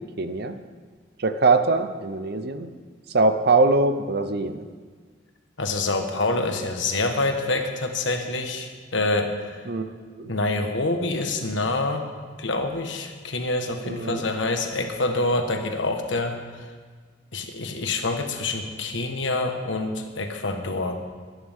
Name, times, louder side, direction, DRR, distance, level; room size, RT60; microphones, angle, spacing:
voice 1, 0.2-0.6 1.2-2.7 3.1-4.6 9.7-9.9 10.2-10.3 13.8-14.3, right 3 dB, 55° right, 10 dB, 0.8 m, -22 dB
voice 2, 5.6-9.6 10.3-12.1 12.4-16.4 17.3-21.0, left 2 dB, 80° left, 4 dB, 1.4 m, -26 dB
22.5 x 9.8 x 3.7 m, 1.6 s
head